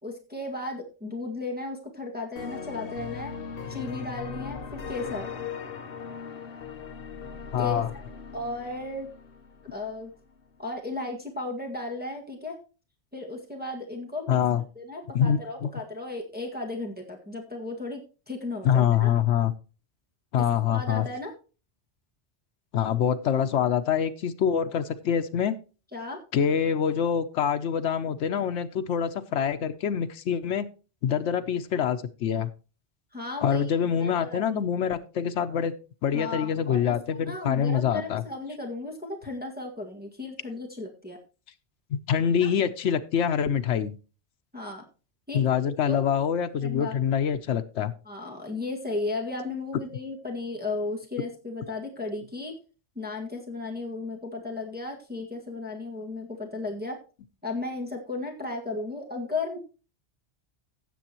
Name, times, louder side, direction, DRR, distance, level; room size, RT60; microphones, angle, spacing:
voice 1, 0.0-3.3 3.7-5.3 7.6-9.1 9.7-10.1 10.6-12.6 13.1-14.4 14.7-19.1 20.4-21.3 25.9-26.2 33.1-34.6 36.1-41.2 42.4-42.5 44.5-44.8 45.3-45.6 45.9-46.0 46.6-46.9 48.0-52.5 52.9-57.0 57.4-59.6, left 2 dB, 10° right, -1 dB, 1.7 m, -35 dB
sound 1, 2.4-10.0, left 6 dB, 60° left, 1.1 m, -39 dB
voice 2, 7.5-7.9 14.3-14.6 15.1-15.7 18.6-19.5 20.3-21.0 22.7-25.5 26.3-30.7 31.0-32.5 33.4-35.7 36.0-38.2 42.1-44.0 45.3-47.9, left 8 dB, 90° left, 8 dB, 1.0 m, -25 dB
16.5 x 7.1 x 2.9 m, 0.34 s
omnidirectional pair, 1.2 m